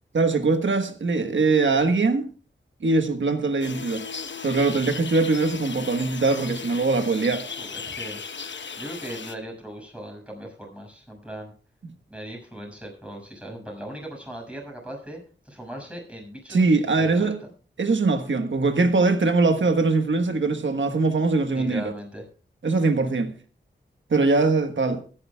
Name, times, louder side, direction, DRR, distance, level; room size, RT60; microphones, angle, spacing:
voice 1, 0.1-2.3 2.8-4.0 4.4-7.4 16.5-17.4 17.8-21.9 22.6-23.3 24.1-25.0, right 3 dB, 85° right, 1.4 m, -22 dB
sound 1, 3.6-9.4, left 5 dB, 70° left, 0.9 m, -36 dB
voice 2, 7.6-8.2 8.7-11.5 12.1-15.2 15.4-17.5 21.5-22.2, right 1 dB, 5° right, 6.3 m, -38 dB
23.5 x 10.5 x 2.3 m
wide cardioid pair, 85°, 19 cm